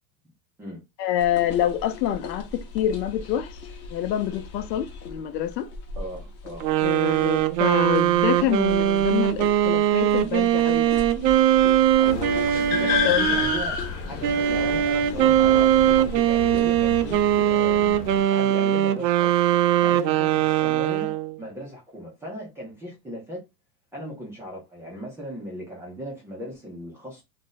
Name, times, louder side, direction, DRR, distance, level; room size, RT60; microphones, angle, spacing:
voice 1, 1.0-3.6 3.9-5.7 6.8-11.5 12.8-13.4, left 10 dB, 80° left, 0.6 m, -27 dB
sound 1, 1.2-17.2, left 3 dB, 30° left, 0.7 m, -40 dB
voice 2, 6.0-7.0 12.0-19.4 19.8-23.4 23.9-27.2, equal, 5° right, 0.3 m, -37 dB
sound 2, 6.6-13.6 14.2-21.4, right 11 dB, 90° right, 0.6 m, -21 dB
sound 3, 12.1-18.2, left 6 dB, 65° left, 0.9 m, -30 dB
2.5 x 2.0 x 3.8 m
supercardioid pair, 140°, 49 cm